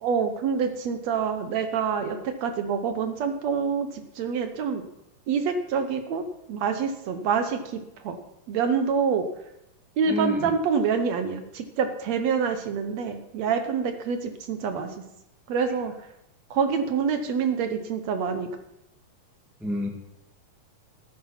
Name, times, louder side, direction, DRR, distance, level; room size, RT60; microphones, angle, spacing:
voice 1, 0.0-4.8 5.3-8.2 8.5-9.3 10.0-15.0 15.5-15.9 16.5-18.5, right 6 dB, 65° right, 8 dB, 2.0 m, -26 dB
voice 2, 10.1-10.5 19.6-19.9, equal, ahead, 2 dB, 0.6 m, -29 dB
14.0 x 10.0 x 5.8 m, 0.86 s
omnidirectional pair, 3.6 m